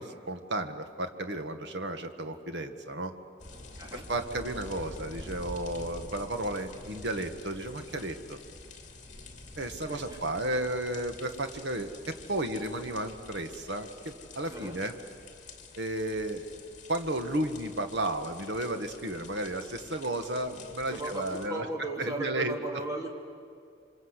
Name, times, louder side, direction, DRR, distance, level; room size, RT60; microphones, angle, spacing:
voice 1, 0.0-3.1 3.9-8.4 9.5-14.9 15.8-16.4 16.9-21.7 22.0-22.5, right 1 dB, 75° right, 7 dB, 1.6 m, -33 dB
sound 1, 3.4-21.5, left 3 dB, 40° left, 2.7 m, -48 dB
voice 2, 9.9-10.2 14.5-14.8 20.9-23.1, right 2 dB, 20° right, 0 dB, 3.0 m, -36 dB
28.0 x 25.0 x 8.2 m, 2.4 s
head